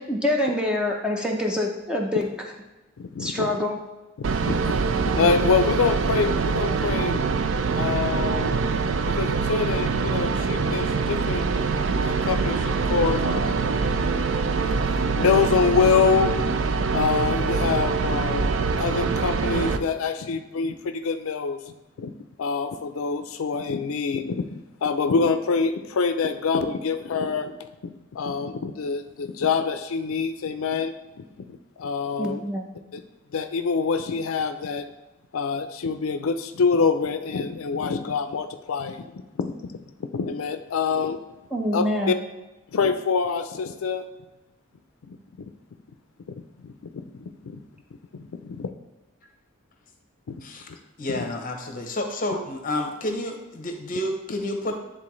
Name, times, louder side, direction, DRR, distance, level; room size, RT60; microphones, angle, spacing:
voice 1, 0.0-2.3 3.2-3.8 32.2-32.7 41.5-42.1, left 1 dB, 5° right, 0 dB, 0.7 m, -25 dB
voice 2, 3.0-3.5 4.2-4.8 5.2-8.6 9.1-11.5 12.0-13.7 15.2-16.6 16.9-21.6 22.0-22.1 22.4-24.5 24.8-27.5 27.8-30.9 31.8-32.4 32.9-33.0 33.3-34.8 35.3-39.0 39.4-39.5 40.1-41.2 41.7-42.2 42.7-44.0 45.1-45.2 46.3-47.6 50.3-50.4 51.1-51.2, left 5 dB, 80° left, 8 dB, 0.4 m, -25 dB
sound 1, 4.2-19.8, right 4 dB, 65° right, 0.4 m, -24 dB
voice 3, 51.0-54.7, left 1 dB, 40° left, 4 dB, 0.8 m, -30 dB
9.7 x 3.8 x 3.1 m, 1.1 s
head